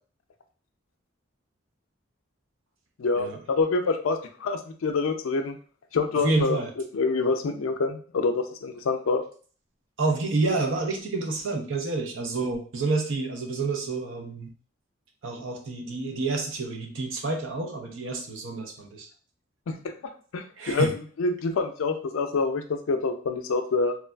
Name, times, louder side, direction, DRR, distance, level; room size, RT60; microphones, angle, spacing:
voice 1, 3.0-5.6 5.9-9.2 19.7-19.9 20.3-20.9 21.2-24.0, left 4 dB, 80° left, 6 dB, 0.4 m, -26 dB
voice 2, 6.2-6.7 10.0-14.5 15.2-19.1 20.6-20.9, right 3 dB, 70° right, 3 dB, 0.6 m, -28 dB
3.1 x 2.3 x 2.2 m, 0.42 s
head